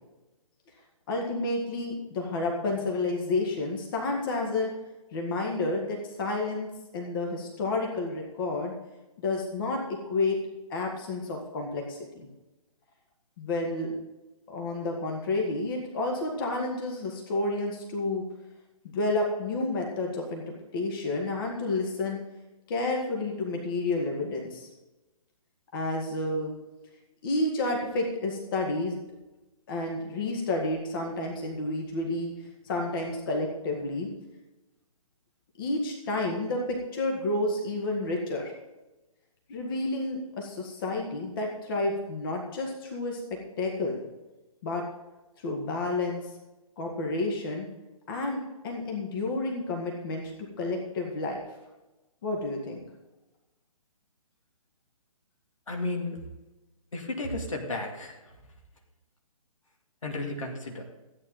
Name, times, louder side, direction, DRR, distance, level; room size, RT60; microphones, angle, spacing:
voice 1, 1.1-4.7 5.1-8.7 9.2-10.4 10.7-12.3 13.4-14.0 14.5-18.2 18.9-20.4 20.7-22.2 22.7-24.7 25.7-26.5 27.2-29.0 29.7-32.3 32.6-34.1 35.6-38.5 39.5-43.2 43.6-44.0 44.6-44.9 45.4-46.2 46.8-47.7 48.1-48.4 48.6-50.3 50.6-51.4 52.2-52.8, left 2 dB, 40° left, 1 dB, 1.9 m, -30 dB
voice 2, 55.7-56.2 56.9-58.2 60.0-60.8, left 2 dB, 65° left, 1 dB, 2.3 m, -33 dB
14.0 x 9.0 x 3.9 m, 1.1 s
figure-of-eight pair, 130°, 18 cm